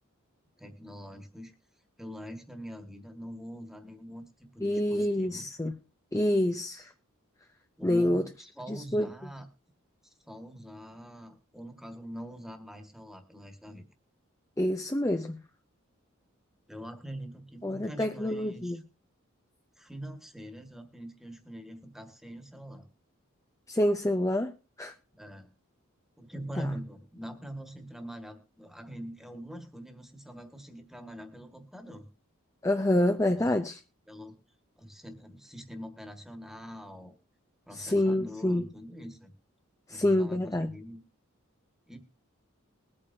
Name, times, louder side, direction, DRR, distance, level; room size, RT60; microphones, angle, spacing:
voice 1, 0.6-1.6 2.0-5.5 7.8-9.5 10.2-13.9 16.7-18.8 19.8-22.9 25.1-25.5 26.2-32.1 34.1-34.4 34.8-37.1 37.7-39.3 39.9-41.0 41.9-42.0, equal, ahead, 6 dB, 1.7 m, -44 dB
voice 2, 4.6-5.7 6.1-6.9 7.8-8.3 8.7-9.1 14.6-15.4 17.6-18.8 23.7-24.5 24.8-24.9 26.6-26.7 32.6-33.8 37.7-38.7 39.9-40.7, left 1 dB, 15° left, 6 dB, 0.6 m, -27 dB
21.5 x 8.8 x 2.7 m, 0.35 s
head